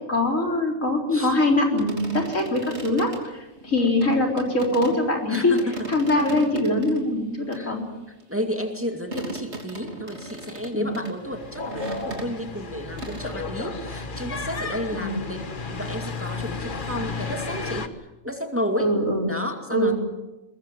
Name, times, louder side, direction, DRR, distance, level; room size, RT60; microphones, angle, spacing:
voice 1, 0.1-5.6 5.9-7.8 10.7-10.9 14.9-15.2 18.8-19.3 19.7-19.9, left 1 dB, 75° left, 1 dB, 4.4 m, -23 dB
sound 1, 1.8-5.0 5.3-7.0 7.5-12.7 13.0-13.4, right 2 dB, 55° right, 3.5 m, -37 dB
voice 2, 5.3-5.7 6.3-6.4 7.5-7.8 8.1-17.9 18.2-18.9 19.3-20.0, equal, 10° right, 4 dB, 2.3 m, -32 dB
sound 2, 11.2-17.9, left 4 dB, 40° left, 1.4 m, -33 dB
22.0 x 21.5 x 7.6 m, 1.0 s
omnidirectional pair, 1.4 m